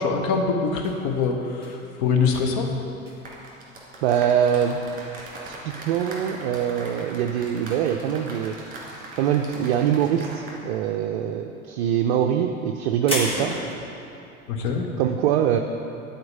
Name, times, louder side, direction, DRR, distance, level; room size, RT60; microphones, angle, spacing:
voice 1, 0.0-2.7 14.5-14.9, left 5 dB, 40° left, 3 dB, 1.1 m, -24 dB
sound 1, 0.8-8.6 8.9-9.6 9.8-13.8, equal, 15° left, 1.8 m, -35 dB
sound 2, 3.2-10.6 10.9-11.1, right 2 dB, 20° right, 2.0 m, -40 dB
voice 2, 4.0-4.8 5.4-8.6 9.2-13.6 15.0-15.6, right 9 dB, 50° right, 4 dB, 0.5 m, -23 dB
11.0 x 4.4 x 5.3 m, 2.7 s
figure-of-eight pair, 80°, 42 cm